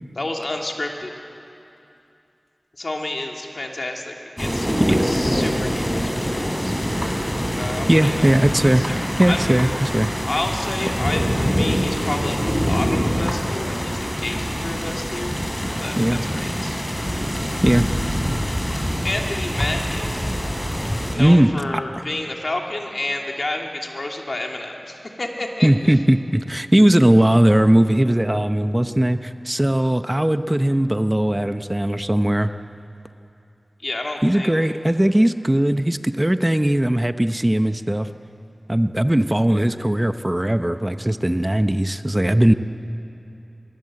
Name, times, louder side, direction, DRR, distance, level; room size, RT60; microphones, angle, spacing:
voice 1, 0.2-1.1 2.8-6.7 7.5-8.3 8.6-9.4 10.2-15.4 15.8-16.8 18.7-20.1 20.8-26.0 33.8-34.5, left 2 dB, 65° left, 1 dB, 2.8 m, -30 dB
sound 1, 4.4-21.1, equal, 10° left, 4.8 m, -24 dB
voice 2, 7.9-10.1 16.0-16.2 17.6-17.9 21.2-21.8 25.6-32.5 34.2-38.1 38.7-42.5, right 1 dB, 20° right, 9 dB, 0.7 m, -18 dB
24.5 x 22.0 x 7.7 m, 2.8 s
wide cardioid pair, 45°, 0 cm